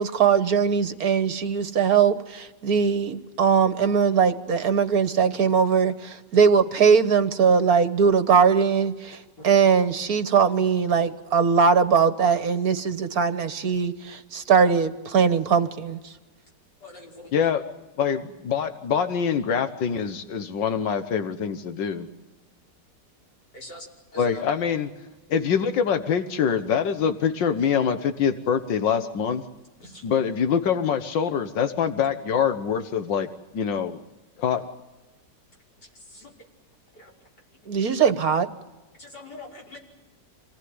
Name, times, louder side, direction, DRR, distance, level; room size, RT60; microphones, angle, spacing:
voice 1, 0.0-16.1 37.7-38.5, right 6 dB, 60° right, 11 dB, 1.6 m, -21 dB
voice 2, 16.8-17.3 23.5-23.9 24.1-24.3 29.8-30.0 36.1-36.3 37.0-37.1 39.0-39.8, left 1 dB, 65° left, -1 dB, 6.3 m, -43 dB
voice 3, 17.3-17.6 18.0-22.1 24.2-24.9 25.3-29.4 30.0-33.3 33.5-34.0 34.4-34.6, left 7 dB, 85° left, 8 dB, 1.9 m, -24 dB
27.0 x 19.0 x 9.6 m, 1.1 s
omnidirectional pair, 1.9 m